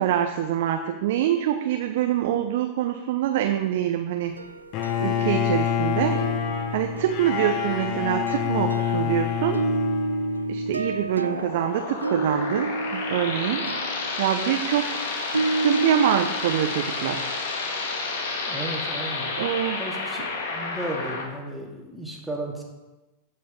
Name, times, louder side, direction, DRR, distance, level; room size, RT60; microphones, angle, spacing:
voice 1, 0.0-4.4 5.0-6.2 6.7-9.6 10.5-13.6 14.2-15.0 15.6-17.3 19.4-19.8, right 11 dB, 55° right, 6 dB, 0.8 m, -25 dB
sound 1, 4.2-5.9 6.1-16.2, right 2 dB, 80° right, 0.4 m, -31 dB
Bowed string instrument, 4.7-10.9, left 9 dB, 40° left, 1.1 m, -27 dB
sound 2, 11.2-21.2, left 3 dB, 60° left, 2.0 m, -30 dB
voice 2, 18.5-19.3 19.8-20.2 20.5-22.6, right 1 dB, ahead, -2 dB, 2.4 m, -34 dB
14.5 x 5.5 x 5.2 m, 1.1 s
figure-of-eight pair, 90°, 0 cm